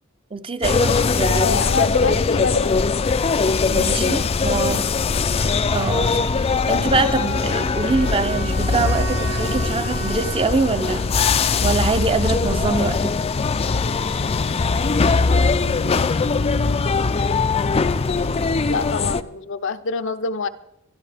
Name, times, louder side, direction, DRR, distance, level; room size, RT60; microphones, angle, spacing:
voice 1, 0.3-1.5 2.0-2.2 3.7-4.9 5.7-11.1 11.6-13.2, right 3 dB, 25° right, 0.6 m, -24 dB
sound 1, 0.6-19.2, left 4 dB, 30° left, 0.4 m, -21 dB
voice 2, 1.4-2.8 18.7-20.5, left 4 dB, 65° left, 0.7 m, -25 dB
sound 2, 7.0-12.0, right 4 dB, 90° right, 5.7 m, -34 dB
24.0 x 12.0 x 3.4 m
head